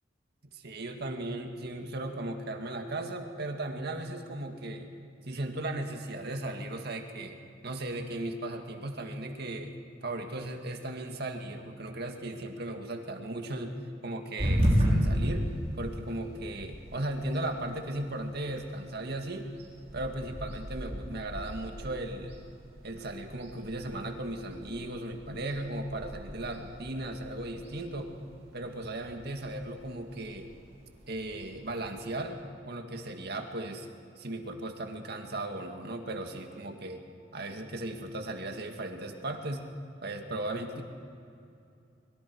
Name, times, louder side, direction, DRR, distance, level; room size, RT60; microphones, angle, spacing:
voice 1, 0.5-4.9 5.3-7.4 7.6-9.8 10.0-13.8 14.0-15.5 15.7-19.5 19.9-22.4 22.8-28.1 28.5-30.5 31.1-32.4 32.7-33.9 34.2-37.0 37.3-39.6 40.0-40.8, right 1 dB, 60° right, 4 dB, 2.0 m, -36 dB
sound 1, 14.4-32.2, equal, 35° right, 5.6 m, -35 dB
24.5 x 23.5 x 4.7 m, 2.6 s
head